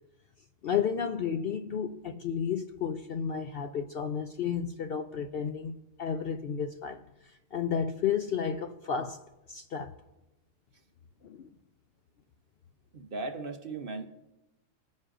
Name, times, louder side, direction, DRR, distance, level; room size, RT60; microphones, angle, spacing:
voice 1, 0.6-9.2 9.5-9.9 11.2-11.5, left 7 dB, 65° left, 0.6 m, -32 dB
voice 2, 12.9-14.1, right 3 dB, 50° right, 0.9 m, -37 dB
20.5 x 9.4 x 2.5 m
omnidirectional pair, 1.4 m